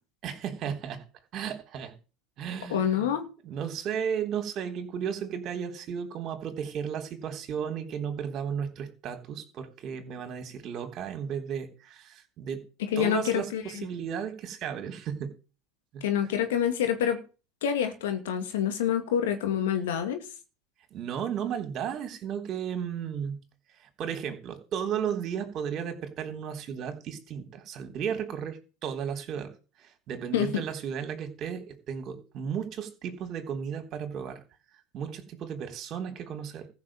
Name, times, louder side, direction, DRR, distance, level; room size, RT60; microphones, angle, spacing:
voice 1, 0.2-1.0 1.3-1.9 2.4-3.1 3.4-12.6 13.0-15.3 15.9-16.0 20.9-23.4 23.8-29.5 29.8-34.4 34.9-36.7, right 8 dB, 45° right, 6 dB, 3.5 m, -34 dB
voice 2, 2.7-3.2 12.8-13.8 16.0-17.2 17.6-20.2 30.3-30.5, left 9 dB, 80° left, 7 dB, 2.6 m, -27 dB
14.5 x 5.9 x 7.4 m, 0.34 s
hypercardioid pair, 90°, 0 cm